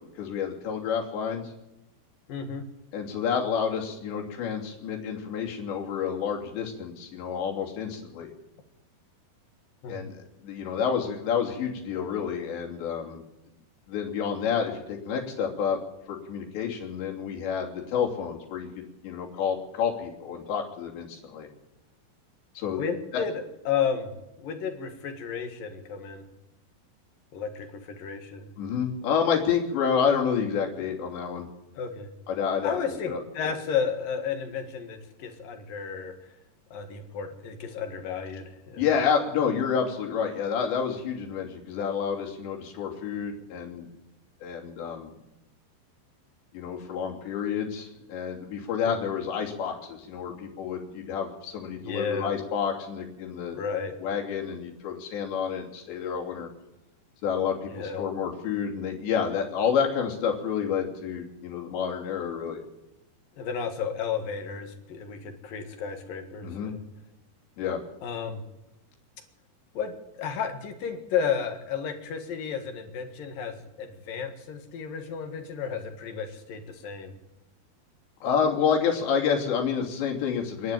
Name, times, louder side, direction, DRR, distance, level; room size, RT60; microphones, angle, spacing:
voice 1, 0.2-1.5 2.9-8.3 9.9-10.1 10.4-13.2 13.9-15.8 16.1-21.5 22.6-22.8 23.1-23.2 28.6-31.5 32.3-32.7 33.1-33.2 38.8-43.9 44.4-45.1 46.5-53.6 54.0-56.5 57.2-62.6 66.4-66.7 67.6-67.8 78.2-80.7, left 7 dB, 90° left, 0 dB, 5.1 m, -29 dB
voice 2, 2.3-2.6 9.8-10.0 22.7-24.1 24.4-26.2 27.3-28.5 31.7-32.1 32.6-36.1 36.7-38.9 48.9-49.0 51.8-52.3 53.5-53.9 57.7-58.0 63.4-66.8 68.0-68.4 69.7-77.1, left 6 dB, 60° left, 6 dB, 3.4 m, -32 dB
26.0 x 11.0 x 9.2 m, 0.93 s
omnidirectional pair, 4.9 m